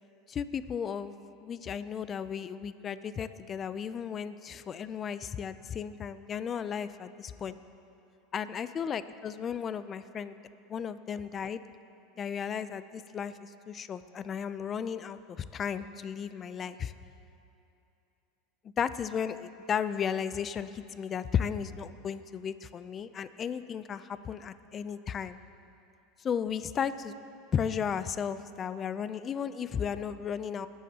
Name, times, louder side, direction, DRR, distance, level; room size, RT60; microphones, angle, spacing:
voice 1, 0.3-1.1 1.4-7.5 8.3-10.4 10.7-11.6 12.2-16.9 18.8-25.4 26.2-27.1 27.5-30.7, left 7 dB, 25° left, 13 dB, 0.4 m, -34 dB
20.5 x 12.5 x 2.9 m, 2.8 s
supercardioid pair, 145°, 0 cm